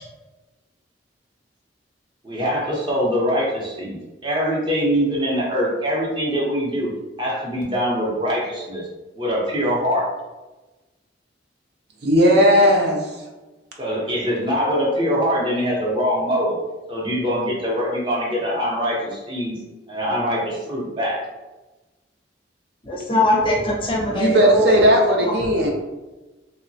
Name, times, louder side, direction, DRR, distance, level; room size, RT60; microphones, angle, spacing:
voice 1, 2.2-6.9 7.2-8.9 9.1-10.1 13.8-16.6 16.9-19.5 19.9-21.2, equal, 25° right, -4 dB, 0.7 m, -23 dB
voice 2, 12.0-13.1 24.1-25.7, equal, 60° right, 0 dB, 0.5 m, -16 dB
voice 3, 22.9-24.8 25.2-25.4, left 1 dB, 30° left, -2 dB, 0.5 m, -21 dB
2.8 x 2.1 x 2.7 m, 1.1 s
head